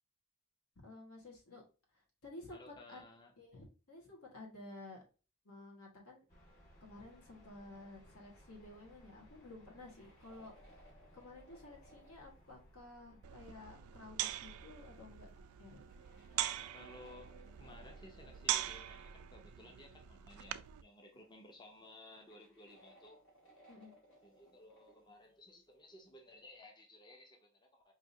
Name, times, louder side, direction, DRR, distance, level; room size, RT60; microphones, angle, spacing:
voice 1, 0.8-1.6 1.9-3.1 3.4-5.0 5.4-6.2 6.8-15.3 15.6-15.8 23.7-23.9, left 2 dB, 80° left, 1.5 m, -53 dB
voice 2, 2.5-3.3 16.7-23.2 24.2-27.9, left 1 dB, 20° left, 0.5 m, -57 dB
sound 1, 6.3-20.2, equal, 35° left, 1.7 m, -64 dB
sound 2, 9.8-12.2 14.4-14.6 15.0-19.0 19.8-19.9 20.7-20.8 21.2-25.1, right 1 dB, 60° left, 1.9 m, -64 dB
sound 3, 13.2-20.8, right 12 dB, 85° right, 0.3 m, -42 dB
4.8 x 2.8 x 2.6 m
head